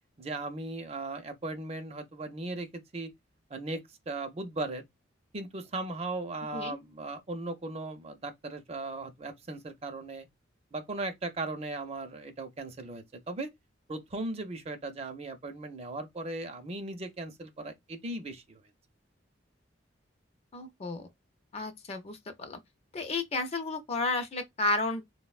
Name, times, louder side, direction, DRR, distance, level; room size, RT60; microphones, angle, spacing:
voice 1, 0.2-3.1 3.5-4.8 5.3-10.3 10.7-13.5 13.9-18.6, right 2 dB, 30° right, 0.5 m, -37 dB
voice 2, 20.5-21.1 21.5-22.6 22.9-25.0, left 2 dB, 35° left, 0.4 m, -32 dB
3.8 x 2.1 x 2.3 m
head